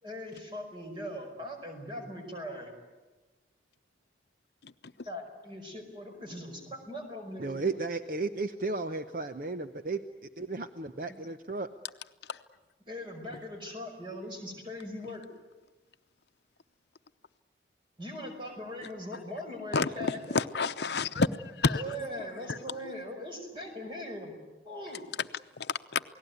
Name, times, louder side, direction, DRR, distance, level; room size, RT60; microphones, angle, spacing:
voice 1, 0.0-2.7 5.1-7.8 12.8-15.2 18.0-20.4 21.7-24.4 24.6-25.1, left 1 dB, 25° right, 3 dB, 5.4 m, -40 dB
voice 2, 7.4-10.0 10.4-11.7, right 3 dB, 50° right, 8 dB, 0.8 m, -34 dB
voice 3, 20.3-21.8 22.5-22.6 25.6-26.0, left 4 dB, 70° left, 11 dB, 0.8 m, -29 dB
28.5 x 19.0 x 9.5 m, 1.2 s
head